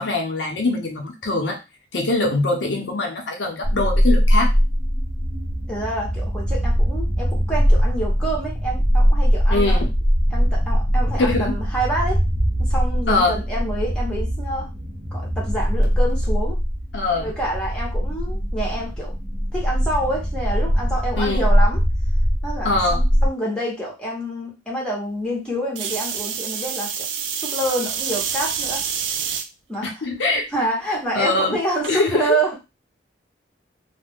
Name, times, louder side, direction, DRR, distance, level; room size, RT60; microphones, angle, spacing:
voice 1, 0.0-1.6 1.9-4.5 9.5-9.9 11.3-11.6 13.1-13.4 16.9-17.3 21.2-21.5 22.6-23.1 29.8-30.5 31.1-31.6 31.9-32.4, left 2 dB, 80° left, 1 dB, 0.7 m, -22 dB
sound 1, 3.6-23.3, equal, 45° right, 0.7 m, -21 dB
voice 2, 5.7-9.8 10.3-12.2 12.7-14.7 15.1-16.6 17.1-19.1 19.5-21.8 22.4-27.1 27.3-28.8 29.7-29.9 30.5-32.5, right 1 dB, 5° left, -4 dB, 0.9 m, -27 dB
sound 2, 25.8-29.5 30.1-30.6 31.8-31.9, right 7 dB, 90° right, 0.4 m, -27 dB
2.4 x 2.1 x 3.4 m, 0.25 s
head